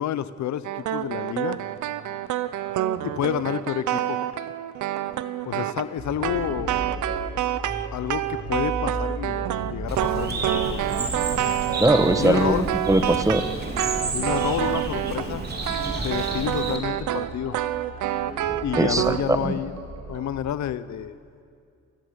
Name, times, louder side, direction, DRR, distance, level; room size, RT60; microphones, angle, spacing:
voice 1, 0.0-1.6 3.0-4.2 5.4-6.7 7.9-10.8 11.5-11.6 12.2-12.7 14.1-15.4 16.0-17.6 18.6-19.7 20.1-21.1, left 11 dB, 70° left, 15 dB, 0.9 m, -29 dB
sound 1, 0.6-15.3 15.6-19.2, right 13 dB, 80° right, 0.9 m, -28 dB
sound 2, 6.0-20.5, right 2 dB, 60° right, 5.7 m, -37 dB
Bird, 9.9-16.8, right 3 dB, 35° right, 3.7 m, -31 dB
voice 2, 11.8-13.4 18.8-19.5, right 1 dB, 10° right, 10 dB, 1.3 m, -21 dB
29.0 x 14.5 x 8.2 m, 2.3 s
cardioid pair, 90°, 30 cm